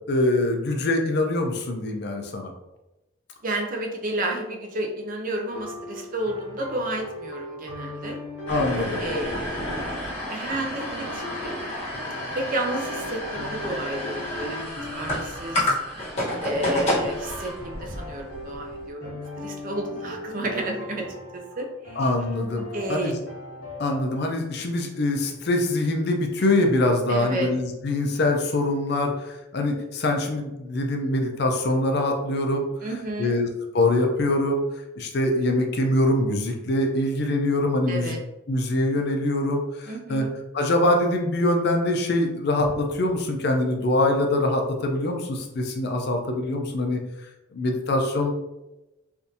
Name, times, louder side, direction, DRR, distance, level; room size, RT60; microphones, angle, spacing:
voice 1, 0.1-2.5 8.5-9.0 22.0-22.6 22.9-23.2 23.8-32.7 33.2-33.5 33.7-34.6 35.0-38.2 38.5-40.2 40.5-47.0 47.5-48.3, left 1 dB, 50° left, 3 dB, 0.5 m, -24 dB
voice 2, 3.4-8.2 9.0-9.6 10.3-11.7 12.3-15.7 16.4-22.0 22.7-23.2 27.1-27.5 32.8-33.4 37.9-38.2 39.9-40.4, right 1 dB, 40° right, 1 dB, 0.5 m, -31 dB
sound 1, 5.5-24.0, left 1 dB, 75° left, 0.9 m, -39 dB
sound 2, 8.5-18.8, left 1 dB, 30° left, 1.2 m, -30 dB
3.4 x 2.6 x 2.7 m, 0.98 s
head